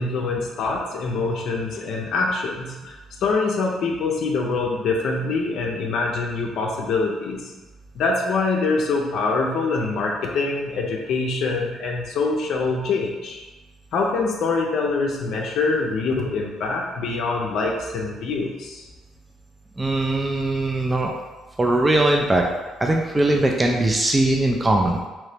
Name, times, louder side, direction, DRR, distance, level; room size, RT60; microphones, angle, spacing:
voice 1, 0.0-7.5 7.9-13.4 13.9-18.8, left 3 dB, 70° left, 0 dB, 0.5 m, -24 dB
voice 2, 19.8-21.1 21.6-22.5 22.8-25.1, right 2 dB, 15° right, 1 dB, 0.4 m, -20 dB
2.9 x 2.7 x 3.3 m, 1.2 s
supercardioid pair, 80°, 0 cm